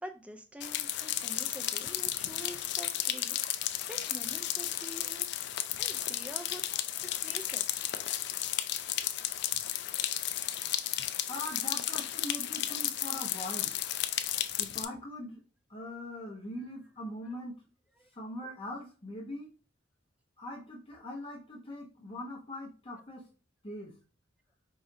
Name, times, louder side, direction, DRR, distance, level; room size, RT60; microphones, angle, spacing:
voice 1, 0.0-3.4 3.9-5.5 5.8-6.6 6.9-7.7 18.0-18.1, right 1 dB, 5° right, 5 dB, 0.4 m, -46 dB
sound 1, 0.6-14.9, left 12 dB, 60° left, 0.3 m, -33 dB
voice 2, 11.3-13.7 14.6-15.4 15.7-17.5 18.1-19.5 20.4-23.2 23.6-23.9, left 1 dB, 30° left, -2 dB, 1.0 m, -41 dB
4.8 x 2.7 x 2.6 m, 0.37 s
head